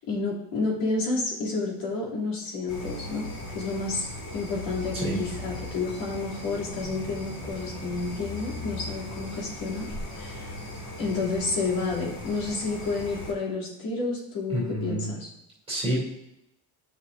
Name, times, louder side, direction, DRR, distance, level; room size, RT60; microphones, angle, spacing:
voice 1, 0.1-4.1 4.3-9.9 10.1-10.5 11.0-15.3, left 3 dB, 85° left, -5 dB, 2.7 m, -30 dB
sound 1, 2.7-13.3, left 1 dB, 50° left, 2.2 m, -38 dB
voice 2, 14.5-15.1 15.7-16.0, right 1 dB, 15° right, -8 dB, 2.8 m, -28 dB
9.6 x 5.6 x 2.5 m, 0.85 s
cardioid pair, 130°, 44 cm